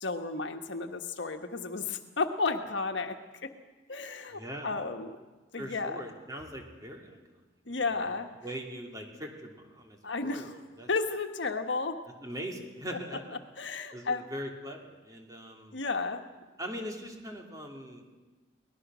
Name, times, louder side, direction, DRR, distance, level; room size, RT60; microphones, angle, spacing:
voice 1, 0.0-3.5 3.9-5.2 5.5-6.0 7.7-8.3 10.0-10.5 10.9-12.0 13.6-14.3 15.7-16.2, left 4 dB, 70° left, 6 dB, 1.4 m, -33 dB
voice 2, 4.3-4.7 5.6-7.2 7.7-7.8 8.1-8.2 8.4-10.5 10.8-10.9 12.2-13.2 13.9-15.8 16.6-18.1, equal, 20° right, 1 dB, 2.8 m, -41 dB
23.5 x 19.0 x 6.3 m, 1.2 s
head